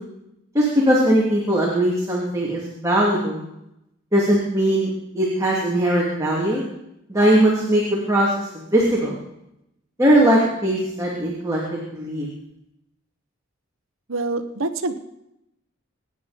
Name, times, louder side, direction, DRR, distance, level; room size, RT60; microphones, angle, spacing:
voice 1, 0.5-3.4 4.1-6.6 7.1-9.1 10.0-12.3, right 1 dB, 15° right, -5 dB, 3.0 m, -20 dB
voice 2, 14.1-14.9, right 2 dB, 70° right, 9 dB, 1.1 m, -25 dB
24.5 x 9.8 x 5.3 m, 0.84 s
head